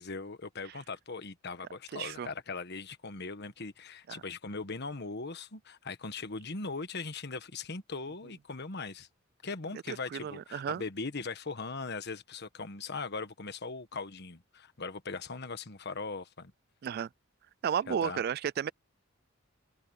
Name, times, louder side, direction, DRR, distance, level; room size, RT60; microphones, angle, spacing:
voice 1, 0.0-9.1 9.4-16.5 17.9-18.2, left 4 dB, 55° left, 1.4 m, -40 dB
voice 2, 1.9-2.3 4.1-4.2 9.9-10.8 16.8-17.1 17.6-18.7, right 8 dB, 50° right, 0.3 m, -33 dB
open air
head